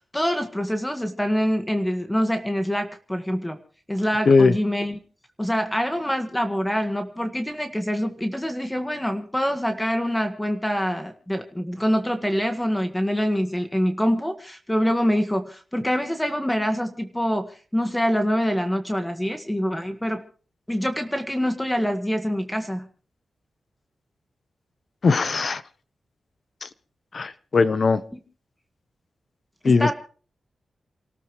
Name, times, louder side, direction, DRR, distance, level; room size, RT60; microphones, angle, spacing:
voice 1, 0.0-3.6 3.9-5.0 5.4-20.2 20.7-22.9 29.6-29.9, equal, 10° left, 6 dB, 1.6 m, -25 dB
voice 2, 25.0-25.6 26.6-26.7 27.1-28.0 29.6-29.9, left 4 dB, 55° left, 14 dB, 1.0 m, -19 dB
28.0 x 13.5 x 3.2 m, 0.41 s
cardioid pair, 75°, 0 cm